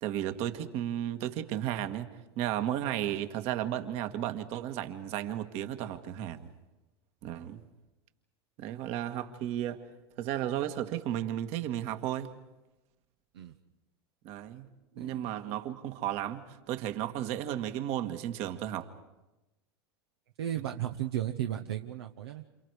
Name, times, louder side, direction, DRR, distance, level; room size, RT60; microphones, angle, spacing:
voice 1, 0.0-2.1 2.3-6.5 7.2-7.6 8.6-9.8 10.2-12.3 14.2-14.7 15.0-18.9, right 11 dB, 50° right, 8 dB, 1.9 m, -34 dB
voice 2, 14.9-15.3 20.4-22.4, right 11 dB, 75° right, 5 dB, 1.1 m, -35 dB
28.5 x 28.5 x 4.9 m, 1.0 s
hypercardioid pair, 90°, 13 cm